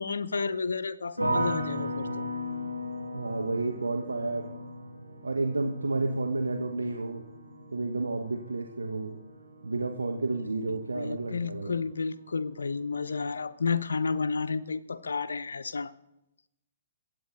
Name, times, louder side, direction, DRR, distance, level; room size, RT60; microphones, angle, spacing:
voice 1, 0.0-2.3 10.7-15.9, left 5 dB, 65° left, 11 dB, 0.6 m, -31 dB
sound 1, 1.2-12.2 12.5-13.3, equal, 90° right, 4.1 m, -37 dB
voice 2, 3.1-4.5 5.2-7.2 7.7-9.2 9.6-11.7, right 3 dB, 70° right, 4 dB, 1.0 m, -31 dB
22.0 x 8.4 x 3.8 m, 0.89 s
figure-of-eight pair, 120°, 0 cm